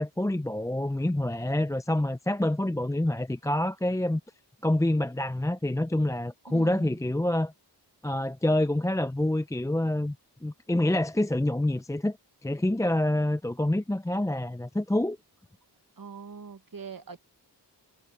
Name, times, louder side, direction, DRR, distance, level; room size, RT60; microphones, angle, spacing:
voice 1, 0.0-4.2 4.6-7.5 8.0-10.2 10.4-12.2 12.4-15.2, left 1 dB, 10° left, 0.5 m, -27 dB
voice 2, 6.5-7.0 16.0-17.2, right 5 dB, 50° right, 1.3 m, -42 dB
wide cardioid pair, 50°, 42 cm